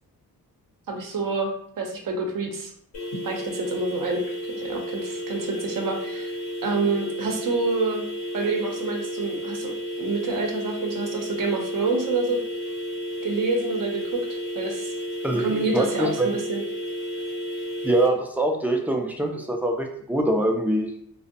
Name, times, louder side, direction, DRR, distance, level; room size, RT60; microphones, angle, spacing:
voice 1, 0.9-2.7 3.2-6.3 6.6-8.1 8.3-12.4 13.2-14.9 15.4-16.6, right 3 dB, 60° right, 2 dB, 0.6 m, -27 dB
sound 1, 2.9-18.1, equal, 85° left, 0.8 m, -32 dB
voice 2, 15.2-16.3 17.8-21.0, right 1 dB, 5° right, 2 dB, 0.4 m, -24 dB
2.5 x 2.0 x 2.6 m, 0.66 s
cardioid pair, 65°, 37 cm